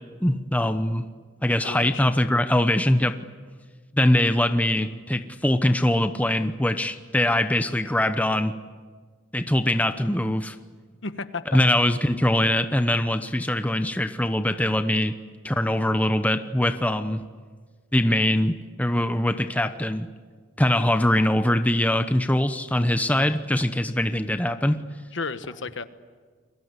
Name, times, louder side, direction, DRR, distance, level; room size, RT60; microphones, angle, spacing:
voice 1, 0.2-1.0 1.4-3.2 3.9-8.5 9.3-10.6 11.5-15.1 15.4-17.2 17.9-20.1 20.6-24.8, left 1 dB, 5° left, 9 dB, 0.9 m, -22 dB
voice 2, 1.6-2.1 11.0-11.6 25.1-25.8, left 4 dB, 65° left, 11 dB, 1.3 m, -33 dB
30.0 x 22.5 x 8.3 m, 1.6 s
head